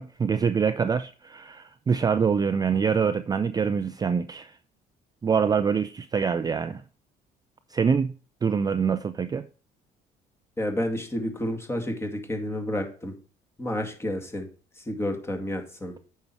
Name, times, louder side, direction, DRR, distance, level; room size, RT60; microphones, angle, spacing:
voice 1, 0.0-4.5 5.2-6.8 7.7-8.1 8.4-9.5, right 6 dB, 25° right, 0.4 m, -25 dB
voice 2, 10.6-13.1 13.6-14.5 14.8-16.0, left 1 dB, 15° left, 2.1 m, -30 dB
8.8 x 5.5 x 4.6 m
cardioid pair, 110°, 17 cm